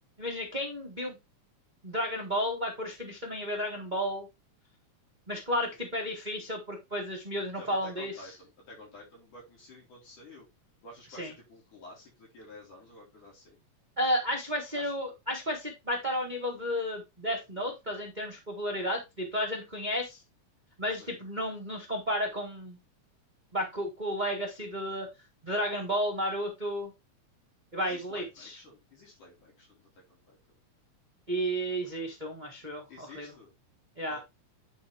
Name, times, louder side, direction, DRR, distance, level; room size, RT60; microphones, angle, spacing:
voice 1, 0.2-1.2 1.8-4.3 5.3-8.1 11.2-11.3 14.0-20.2 20.8-22.8 23.5-25.1 25.4-26.9 27.7-28.5 31.3-33.3 34.0-34.2, equal, 25° right, -1 dB, 0.9 m, -32 dB
voice 2, 7.6-10.5 10.8-13.6 14.7-14.9 20.9-21.1 27.8-30.4 32.9-33.5 34.1-34.2, left 1 dB, 80° left, -4 dB, 5.5 m, -51 dB
9.3 x 4.3 x 3.4 m, 0.23 s
omnidirectional pair, 3.5 m